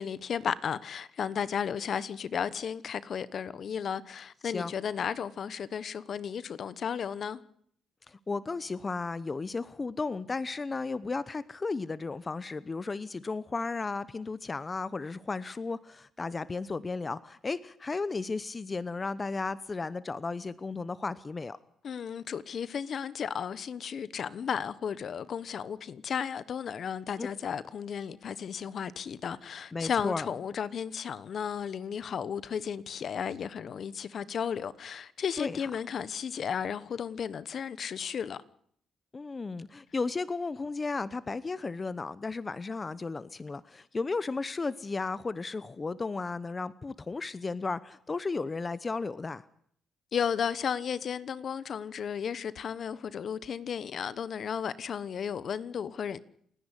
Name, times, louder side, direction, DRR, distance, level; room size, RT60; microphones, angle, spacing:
voice 1, 0.0-7.4 21.8-38.4 50.1-56.2, left 7 dB, 55° left, 1.1 m, -34 dB
voice 2, 8.1-21.6 27.2-27.3 29.7-30.3 35.4-35.6 39.1-49.4, left 4 dB, 30° left, 0.9 m, -34 dB
30.0 x 10.5 x 9.9 m
cardioid pair, 90°, 0 cm